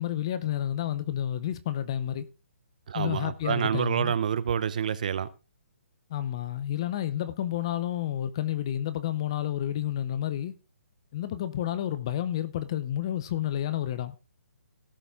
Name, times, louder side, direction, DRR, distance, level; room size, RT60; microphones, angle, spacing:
voice 1, 0.0-2.3 2.9-4.2 6.1-10.5 11.1-14.1, left 11 dB, 20° left, 0.6 m, -30 dB
voice 2, 2.9-5.3, right 8 dB, 30° right, 0.6 m, -28 dB
17.0 x 6.9 x 3.6 m
hypercardioid pair, 175°, 8 cm